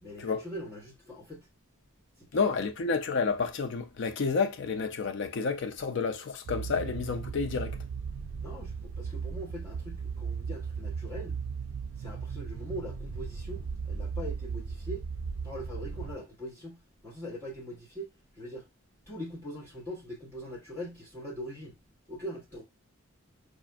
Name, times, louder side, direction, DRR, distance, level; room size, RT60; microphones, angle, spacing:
voice 1, 0.0-1.5 2.2-2.3 2.6-2.7 8.4-11.4 12.0-15.0 15.4-18.1 18.3-18.6 19.1-21.8 22.1-22.6, equal, 10° left, 1.2 m, -42 dB
voice 2, 2.3-7.8, left 5 dB, 55° left, 0.4 m, -30 dB
sound 1, 6.4-16.2, right 5 dB, 70° right, 0.3 m, -37 dB
4.9 x 2.5 x 2.2 m
head